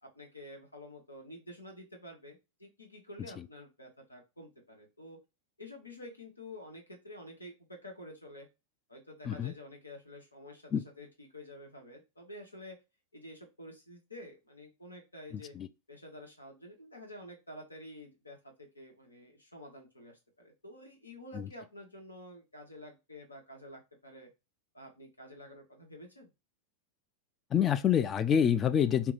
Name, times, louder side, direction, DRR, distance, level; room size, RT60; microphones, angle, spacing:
voice 1, 0.0-5.2 5.6-8.5 8.9-12.8 13.1-15.5 15.9-24.3 24.7-26.3, left 1 dB, 80° left, 1.1 m, -49 dB
voice 2, 15.3-15.7 21.3-21.5 27.5-29.1, left 8 dB, 25° left, 0.3 m, -27 dB
2.8 x 2.2 x 3.9 m
figure-of-eight pair, 90°, 0 cm